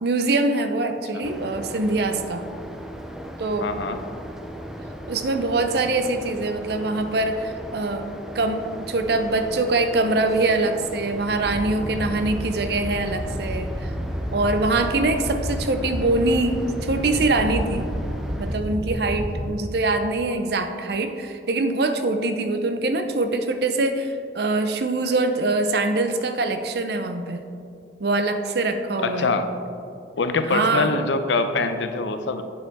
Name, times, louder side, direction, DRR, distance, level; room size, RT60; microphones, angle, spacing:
voice 1, 0.0-2.5 3.4-3.7 5.1-13.9 14.3-17.9 18.4-27.4 28.0-29.4 30.5-31.0, right 2 dB, 60° right, 7 dB, 0.6 m, -23 dB
sound 1, 1.2-18.6, right 1 dB, 5° right, 0.4 m, -38 dB
voice 2, 3.6-4.0 29.0-29.5 30.2-32.4, left 3 dB, 80° left, 9 dB, 0.6 m, -24 dB
Animal, 11.3-19.5, equal, 30° right, 1.5 m, -30 dB
8.6 x 6.9 x 3.5 m, 2.5 s
head